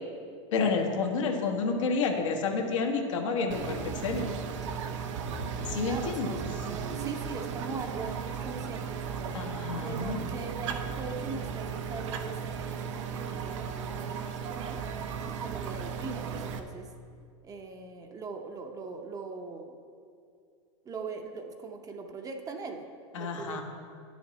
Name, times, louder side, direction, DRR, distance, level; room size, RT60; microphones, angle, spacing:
voice 1, 0.5-4.3 5.7-6.3 9.3-10.2 23.1-23.6, left 4 dB, 75° left, 2 dB, 1.3 m, -29 dB
sound 1, 3.5-16.6, right 6 dB, 70° right, 0.7 m, -36 dB
voice 2, 5.9-9.3 9.8-14.8 15.4-16.9 17.4-19.8 20.8-22.8 23.1-23.6, right 4 dB, 20° right, 4 dB, 0.7 m, -41 dB
9.5 x 6.3 x 4.1 m, 2.3 s
hypercardioid pair, 115°, 16 cm